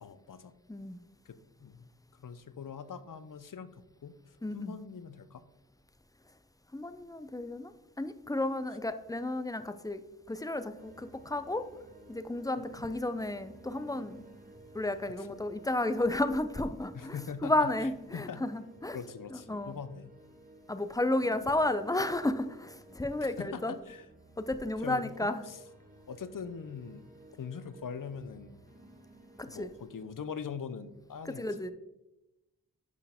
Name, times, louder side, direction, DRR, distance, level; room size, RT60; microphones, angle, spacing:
voice 1, 0.0-0.5 1.3-1.9 2.2-4.2 4.5-5.4 12.6-12.7 15.2-15.4 16.9-18.4 18.9-20.1 21.2-21.7 23.2-24.1 24.8-25.6 26.1-27.0 27.4-28.6 29.5-31.5, left 6 dB, 70° left, 13 dB, 0.6 m, -42 dB
voice 2, 4.4-4.7 6.7-10.0 10.3-11.6 12.1-14.2 14.7-19.0 19.3-19.8 20.7-23.7 24.4-25.4 29.4-29.7 31.4-31.7, left 2 dB, 10° left, 11 dB, 0.5 m, -32 dB
sound 1, 10.7-30.1, right 2 dB, 25° right, 1.4 m, -55 dB
11.0 x 4.5 x 3.5 m, 0.97 s
wide cardioid pair, 45°, 34 cm